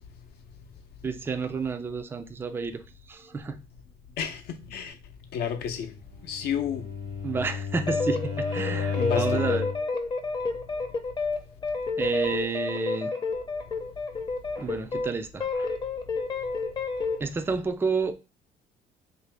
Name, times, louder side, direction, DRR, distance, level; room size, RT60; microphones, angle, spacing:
voice 1, 1.0-2.8 3.1-3.6 7.2-9.6 12.0-13.1 14.6-15.7 17.2-18.1, right 4 dB, 15° right, 0.3 m, -30 dB
voice 2, 4.2-5.0 5.3-5.9 6.2-6.8 8.9-9.5, left 8 dB, 70° left, 0.6 m, -31 dB
Bowed string instrument, 6.3-9.9, left 6 dB, 75° right, 1.2 m, -32 dB
sound 1, 7.9-15.1 15.4-17.2, left 3 dB, 25° left, 0.6 m, -30 dB
3.4 x 2.6 x 3.3 m
cardioid pair, 110°, 17 cm